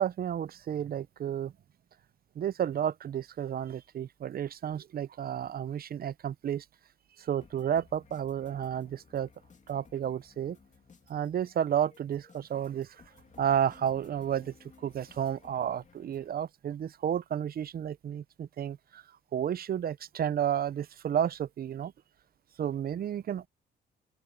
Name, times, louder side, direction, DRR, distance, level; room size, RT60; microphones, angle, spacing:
voice 1, 0.0-1.5 2.4-6.6 7.2-9.3 9.7-10.6 11.1-13.0 13.4-14.5 14.8-19.0 19.3-21.9 22.6-23.5, right 9 dB, 50° right, 0.6 m, -31 dB
sound 1, 7.4-16.3, left 5 dB, 40° left, 2.5 m, -59 dB
open air
cardioid pair, 90°, 20 cm